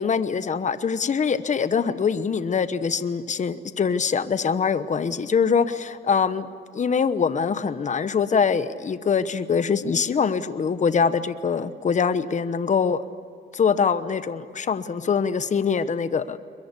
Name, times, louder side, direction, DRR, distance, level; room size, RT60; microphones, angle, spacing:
voice 1, 0.0-6.5 6.7-13.0 13.5-16.4, left 6 dB, 35° left, 13 dB, 1.0 m, -23 dB
23.0 x 22.0 x 8.3 m, 2.4 s
cardioid pair, 90°, 20 cm